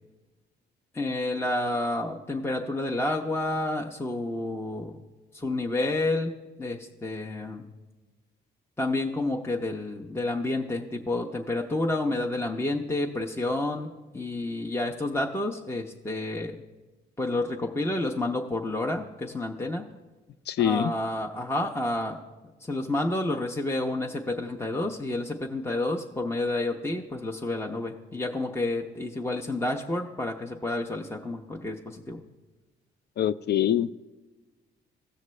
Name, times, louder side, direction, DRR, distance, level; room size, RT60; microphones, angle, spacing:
voice 1, 0.9-4.9 5.3-6.3 6.6-7.7 8.8-16.5 17.2-19.9 20.6-22.2 22.7-32.2, left 2 dB, 10° left, 1 dB, 0.6 m, -29 dB
voice 2, 20.5-20.9 33.2-33.9, left 10 dB, 55° left, 15 dB, 0.4 m, -24 dB
17.0 x 6.4 x 3.2 m, 1.2 s
cardioid pair, 90°, 20 cm